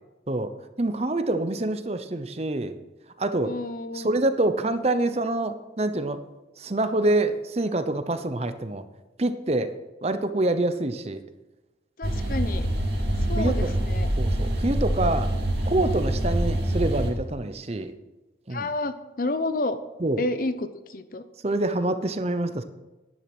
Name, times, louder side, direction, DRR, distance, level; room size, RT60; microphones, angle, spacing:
voice 1, 0.8-2.8 3.2-3.5 3.9-6.2 6.6-8.8 9.2-9.7 10.0-11.2 12.3-12.4 13.4-13.7 14.2-15.3 15.7-17.9 18.5-18.7 20.0-20.2 21.4-22.6, right 2 dB, 35° right, 10 dB, 0.8 m, -26 dB
voice 2, 3.4-4.1 12.0-12.7 13.3-14.1 18.5-19.8 20.2-21.2, left 2 dB, 50° left, 11 dB, 0.8 m, -30 dB
sound 1, 12.0-17.1, right 1 dB, 65° right, 2.7 m, -25 dB
10.5 x 10.5 x 6.1 m, 1.1 s
head